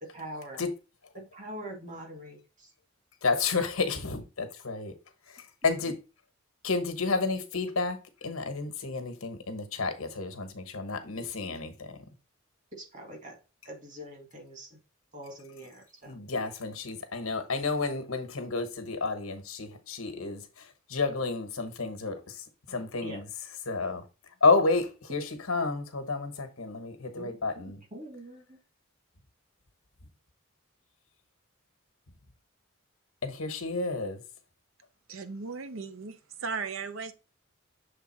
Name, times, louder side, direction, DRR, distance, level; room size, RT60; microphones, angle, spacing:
voice 1, 0.0-0.6 1.1-2.7 12.7-13.4 13.6-14.8 15.1-16.2 23.0-23.2 27.2-28.6, right 1 dB, 35° right, 2.0 m, -44 dB
voice 2, 3.2-4.9 5.3-5.9 6.6-12.0 16.0-23.2 23.7-24.0 24.4-27.8 33.2-34.2, left 3 dB, 85° left, 1.2 m, -30 dB
voice 3, 35.1-37.1, right 5 dB, 70° right, 0.7 m, -37 dB
6.8 x 3.5 x 4.3 m
head